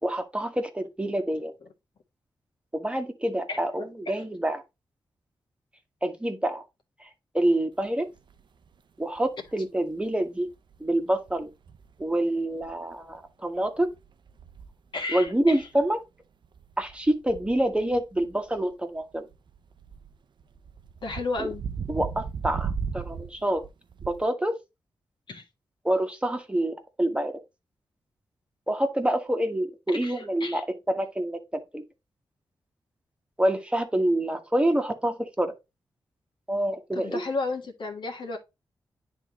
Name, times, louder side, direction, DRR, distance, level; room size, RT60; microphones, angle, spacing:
voice 1, 0.0-1.5 2.7-4.6 6.0-6.6 7.0-8.1 9.0-10.5 10.8-11.5 12.0-13.9 15.1-16.0 16.8-19.3 21.4-21.5 21.9-23.7 24.0-24.5 25.8-27.4 28.7-31.8 33.4-35.6 36.5-37.2, right 1 dB, 15° right, 1.2 m, -27 dB
sound 1, 7.9-8.0 8.2-8.8 9.2-9.5 9.9-10.0 10.5-11.0 11.3-12.1 12.5-13.2 13.6-15.9 16.4-24.2, right 6 dB, 65° right, 0.5 m, -37 dB
voice 2, 14.9-15.6 21.0-21.6 25.3-25.4 30.0-30.6 36.9-38.4, left 3 dB, 70° left, 1.6 m, -32 dB
10.0 x 3.5 x 3.0 m
cardioid pair, 65°, 9 cm